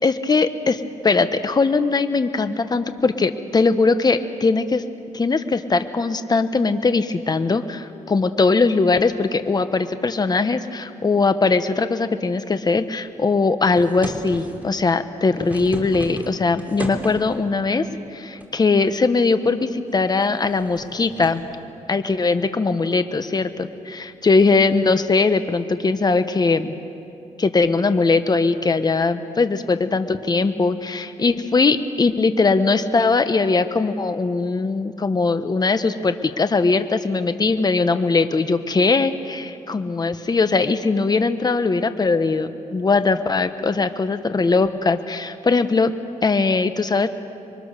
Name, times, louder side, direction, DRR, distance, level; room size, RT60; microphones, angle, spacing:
voice 1, 0.0-4.8 5.1-17.8 18.1-21.4 21.9-26.8 27.4-45.9 46.2-47.1, left 4 dB, 30° left, 10 dB, 1.2 m, -20 dB
sound 1, 13.7-14.7 15.2-17.4 18.4-18.9 19.3-19.4 20.0-21.5 24.3-24.6, right 1 dB, 10° right, 3.1 m, -34 dB
26.5 x 23.0 x 6.7 m, 2.6 s
cardioid pair, 90°, 13 cm